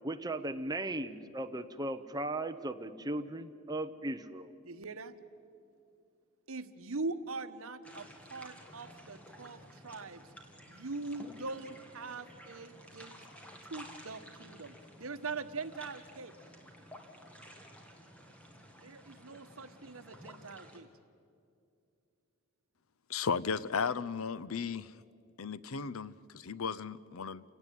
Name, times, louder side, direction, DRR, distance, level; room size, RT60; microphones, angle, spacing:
voice 1, 0.0-4.5, right 1 dB, 20° right, 0.9 m, -37 dB
voice 2, 4.6-5.1 6.5-10.2 10.7-13.2 13.7-16.3 18.8-20.9, right 3 dB, 75° right, 1.2 m, -42 dB
sound 1, 7.8-20.8, equal, 5° left, 2.1 m, -53 dB
voice 3, 23.1-24.9 25.4-27.4, left 5 dB, 75° left, 0.6 m, -35 dB
28.5 x 17.5 x 9.3 m
head